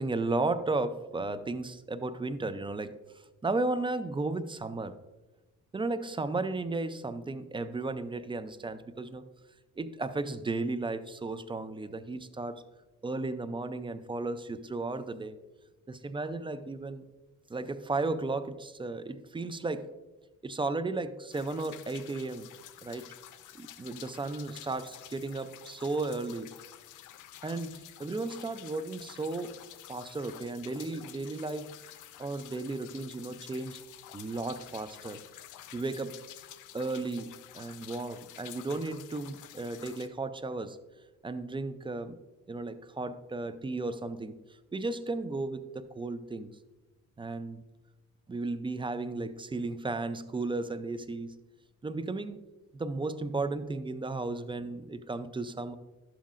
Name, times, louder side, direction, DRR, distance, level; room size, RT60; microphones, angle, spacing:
voice 1, 0.0-3.0 3.4-5.0 5.7-9.3 9.8-12.6 13.0-15.4 15.9-17.0 17.5-19.9 20.4-22.5 22.8-23.1 23.6-26.5 27.4-29.6 29.9-31.8 32.2-33.8 34.1-35.2 35.7-36.2 36.7-40.8 41.2-42.2 42.5-44.4 44.7-46.6 47.2-47.7 48.3-51.4 51.8-52.5 52.7-55.8, right 3 dB, 15° right, 13 dB, 0.4 m, -34 dB
sound 1, 21.3-40.1, left 12 dB, 80° left, 0.6 m, -50 dB
11.5 x 7.3 x 2.5 m, 1.1 s
cardioid pair, 90°, 30 cm